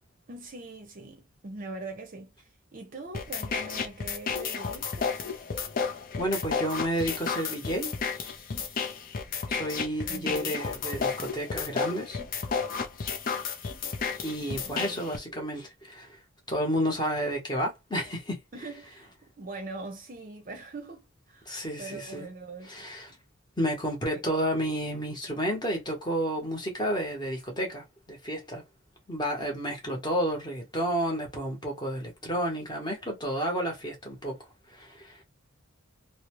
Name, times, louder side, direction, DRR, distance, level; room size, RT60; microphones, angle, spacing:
voice 1, 0.3-5.3 10.1-10.7 14.4-15.1 18.5-22.9 24.1-24.2, right 3 dB, 40° right, 0.6 m, -42 dB
sound 1, 3.1-15.2, left 5 dB, 40° left, 0.5 m, -32 dB
voice 2, 6.2-7.9 9.5-12.2 14.2-16.1 16.5-18.4 21.5-22.3 22.7-23.1 23.6-28.6 29.1-34.4 34.7-35.2, equal, 20° left, 0.9 m, -31 dB
2.6 x 2.1 x 2.9 m
head